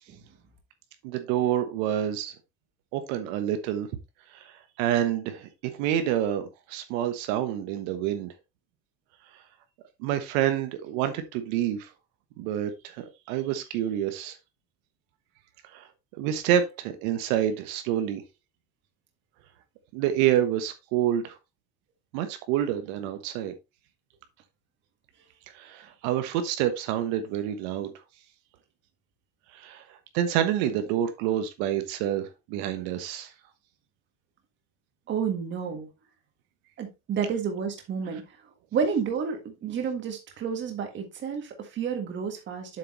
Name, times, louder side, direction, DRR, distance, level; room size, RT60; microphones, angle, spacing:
voice 1, 1.0-2.3 2.9-3.9 4.3-5.5 5.8-8.3 10.0-11.9 12.4-14.4 15.7-15.9 16.2-18.2 19.9-21.3 22.1-23.5 25.5-27.9 29.5-29.8 30.1-33.3, right 11 dB, 70° right, 1.3 m, -28 dB
voice 2, 35.1-35.9 36.8-38.2 38.7-42.8, right 6 dB, 25° right, 1.7 m, -30 dB
7.7 x 6.7 x 3.2 m
cardioid pair, 180°, 42 cm